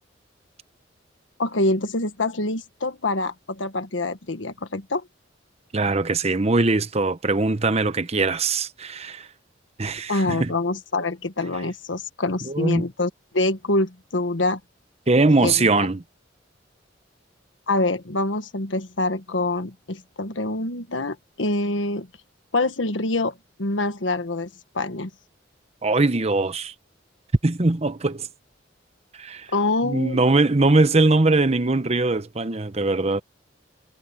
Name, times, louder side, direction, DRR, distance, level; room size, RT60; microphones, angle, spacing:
voice 1, 1.4-5.0 10.1-14.6 15.4-15.9 17.7-22.1 22.5-24.5 24.7-25.1 29.5-30.2, left 2 dB, 90° left, 1.5 m, -25 dB
voice 2, 5.7-9.3 9.8-10.5 12.4-12.8 15.1-16.0 25.8-26.7 27.4-28.3 29.2-29.5 29.8-33.2, right 3 dB, 35° right, 0.9 m, -21 dB
head